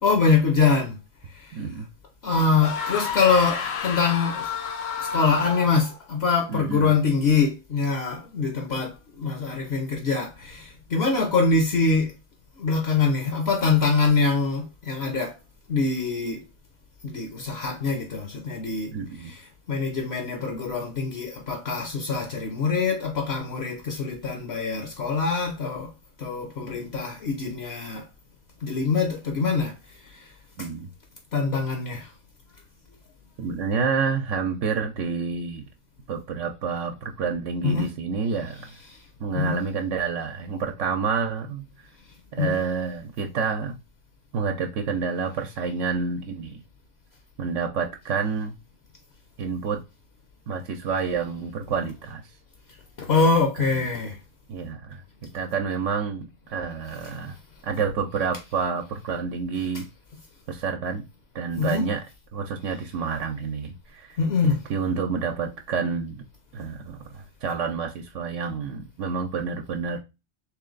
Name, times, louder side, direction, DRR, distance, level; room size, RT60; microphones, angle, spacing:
voice 1, 0.0-1.0 1.3-1.6 2.2-4.5 5.0-12.1 12.6-15.4 15.7-16.4 17.0-18.9 19.2-19.4 19.7-25.9 26.2-28.1 28.6-29.7 30.0-30.3 31.3-32.1 37.6-37.9 39.3-39.6 42.4-42.6 53.0-54.2 61.6-61.9 64.2-64.6, left 4 dB, 65° left, 0.9 m, -24 dB
voice 2, 1.5-1.9 6.5-6.9 18.9-19.3 30.6-30.9 33.4-35.7 36.1-38.7 39.2-41.6 42.3-43.8 44.3-46.6 47.4-48.5 49.4-49.8 50.5-52.2 53.6-53.9 54.5-55.0 55.3-57.4 57.6-59.8 60.5-61.0 61.3-62.0 62.3-64.2 64.4-66.2 66.5-70.0, right 5 dB, 80° right, 0.9 m, -28 dB
sound 1, 2.6-6.0, left 5 dB, 85° left, 1.1 m, -30 dB
3.2 x 3.1 x 3.8 m
omnidirectional pair, 1.3 m